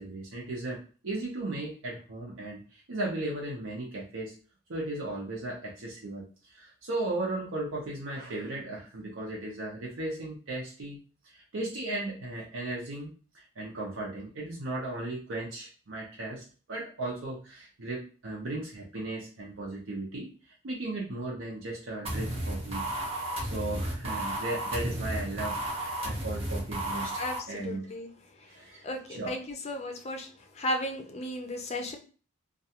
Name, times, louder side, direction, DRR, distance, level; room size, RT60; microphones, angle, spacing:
voice 1, 0.0-4.3 4.7-11.0 11.2-20.3 20.6-22.9 23.4-27.1 27.5-27.9 28.5-29.3, right 2 dB, 85° right, -3 dB, 0.6 m, -36 dB
sound 1, 22.0-27.4, right 1 dB, 30° right, 0.7 m, -33 dB
voice 2, 27.2-28.1 28.8-30.3 30.6-32.0, left 1 dB, 35° left, 5 dB, 0.4 m, -34 dB
2.4 x 2.2 x 2.8 m, 0.37 s
head